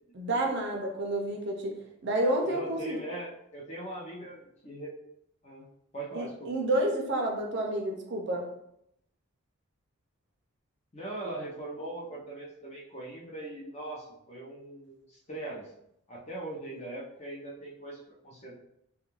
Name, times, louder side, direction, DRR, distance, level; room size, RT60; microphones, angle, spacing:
voice 1, 0.1-1.7 2.0-3.0 6.1-8.5, right 1 dB, 50° right, 1 dB, 0.4 m, -29 dB
voice 2, 2.4-4.9 5.4-5.7 5.9-6.5 10.9-15.7 16.1-18.6, right 2 dB, 30° left, -3 dB, 0.5 m, -40 dB
2.3 x 2.2 x 3.0 m, 0.77 s
head